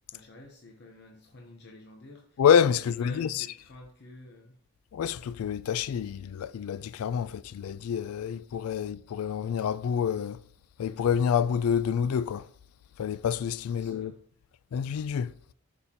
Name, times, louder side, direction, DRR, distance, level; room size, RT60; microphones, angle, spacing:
voice 1, 0.1-2.4 2.7-4.6 13.7-14.2, left 1 dB, 50° left, 0.8 m, -49 dB
voice 2, 2.4-3.5 4.9-10.4 10.8-12.5 13.0-14.1 14.7-15.3, left 8 dB, 80° left, 0.3 m, -27 dB
6.4 x 5.3 x 2.9 m
head